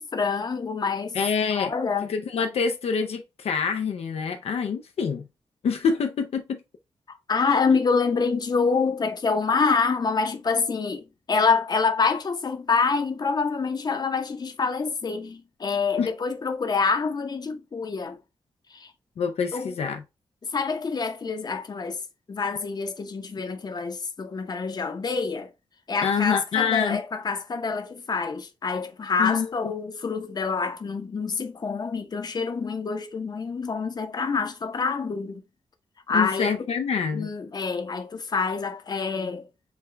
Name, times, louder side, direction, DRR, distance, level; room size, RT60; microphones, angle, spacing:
voice 1, 0.0-1.2 1.5-2.1 7.3-11.0 11.3-18.2 18.7-18.9 19.5-19.7 20.5-22.0 22.3-25.5 25.9-35.4 36.1-36.5 37.1-39.5, left 4 dB, 40° left, 0.7 m, -26 dB
voice 2, 1.1-1.7 2.1-5.2 5.6-6.6 7.5-7.6 16.0-16.1 19.2-20.0 26.0-27.0 29.2-29.5 36.1-37.3, left 6 dB, 70° left, 0.5 m, -26 dB
5.6 x 2.3 x 3.3 m
wide cardioid pair, 110°, 11 cm